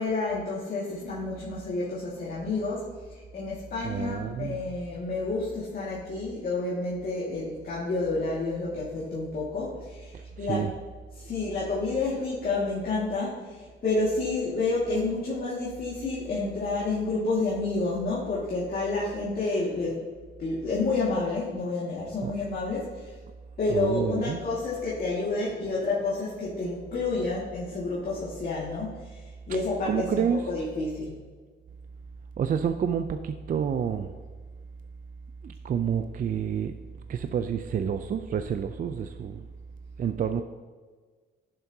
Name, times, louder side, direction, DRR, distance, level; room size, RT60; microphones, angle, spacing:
voice 1, 0.0-10.1 10.4-10.6 11.2-20.1 20.4-23.1 23.6-29.2 29.5-31.2, left 3 dB, 50° left, -6 dB, 2.0 m, -29 dB
voice 2, 3.8-4.6 10.1-10.7 22.2-22.3 23.7-24.4 29.9-30.4 32.4-34.1 35.4-36.7 37.1-39.5 40.0-40.4, right 8 dB, 45° right, 8 dB, 0.4 m, -29 dB
10.5 x 7.3 x 2.8 m, 1.4 s
cardioid pair, 90°, 20 cm